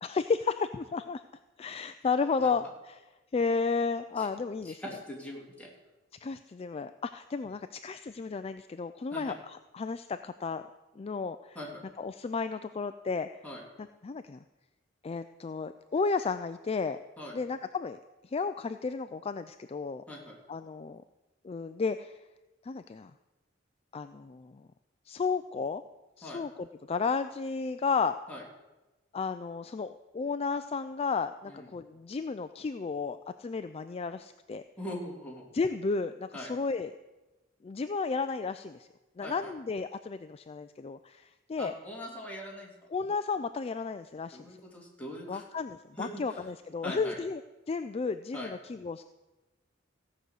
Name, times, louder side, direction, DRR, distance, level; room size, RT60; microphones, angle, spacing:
voice 1, 0.0-1.2 1.6-3.0 3.3-4.8 6.2-10.6 11.0-11.6 12.0-13.3 14.0-14.4 15.0-17.0 17.3-20.0 20.5-21.0 21.4-22.2 22.6-23.1 23.9-24.7 25.1-25.8 26.2-28.1 29.1-34.6 35.5-36.9 37.6-38.9 39.2-41.7 42.9-44.6 45.3-47.4 47.7-49.0, left 4 dB, 30° left, 10 dB, 0.4 m, -33 dB
voice 2, 4.6-5.7 9.1-9.3 11.5-11.8 13.4-13.6 17.2-17.3 20.1-20.3 26.2-26.4 28.3-28.4 31.5-31.7 34.8-35.4 36.3-36.5 39.2-39.5 41.6-42.7 44.3-45.4 46.0-46.4 46.8-47.2 48.3-48.5, left 1 dB, 5° left, -3 dB, 2.9 m, -41 dB
15.5 x 6.3 x 8.1 m, 1.1 s
head